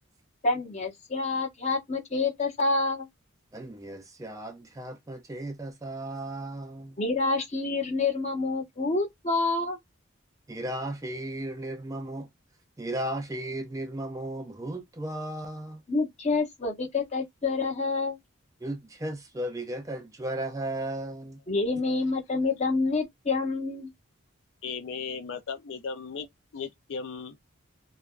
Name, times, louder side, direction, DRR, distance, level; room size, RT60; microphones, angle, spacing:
voice 1, 0.4-3.1 7.0-9.8 15.9-18.2 21.5-23.9, left 3 dB, 30° left, 0.8 m, -27 dB
voice 2, 3.5-7.0 10.5-12.3 12.8-15.8 18.6-21.4, right 1 dB, 15° right, 0.3 m, -35 dB
voice 3, 24.6-26.3 26.5-27.4, left 5 dB, 60° left, 0.4 m, -36 dB
3.3 x 2.2 x 2.4 m
head